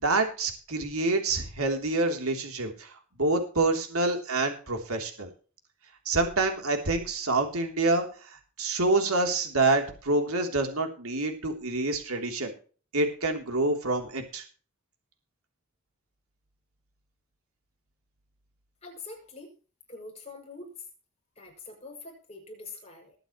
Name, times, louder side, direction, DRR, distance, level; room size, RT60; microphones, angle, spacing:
voice 1, 0.0-2.9 3.2-5.3 6.0-12.5 12.9-14.4, right 2 dB, 80° right, 4 dB, 3.3 m, -27 dB
voice 2, 18.8-19.5 19.9-20.7 21.4-23.2, left 3 dB, 30° left, 1 dB, 6.4 m, -44 dB
21.0 x 9.1 x 3.1 m, 0.38 s
head